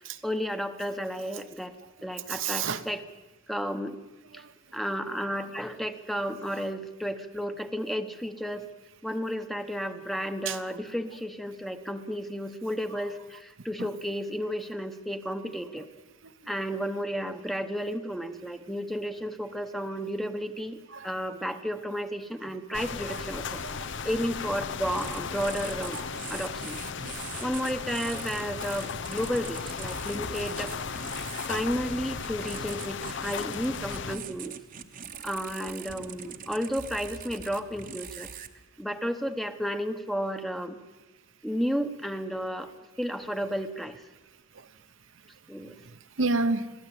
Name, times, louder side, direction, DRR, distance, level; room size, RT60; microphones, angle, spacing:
voice 1, 0.2-1.7 2.0-3.0 3.5-4.0 4.3-4.4 4.7-8.7 9.0-15.9 16.5-23.6 24.0-26.0 26.3-26.8 27.4-30.7 31.5-34.6 35.2-38.3 38.8-40.8 41.4-42.7 43.0-44.0 45.5-45.8, equal, ahead, 8 dB, 1.0 m, -32 dB
voice 2, 2.3-2.9 4.3-4.8 5.1-5.3 10.4-10.6 12.9-13.1 13.6-13.9 16.2-16.5 20.9-21.5 22.9-23.2 23.5-24.2 25.4-25.5 25.8-26.3 27.0-27.4 30.8-31.5 33.2-33.4 34.9-35.3 36.3-36.4 38.5-38.8 44.2-46.9, right 3 dB, 70° right, 9 dB, 1.0 m, -35 dB
sound 1, 22.7-34.2, left 6 dB, 60° left, 0.7 m, -36 dB
sound 2, 24.8-38.5, right 6 dB, 40° right, 1.1 m, -43 dB
22.0 x 15.0 x 8.9 m, 1.2 s
head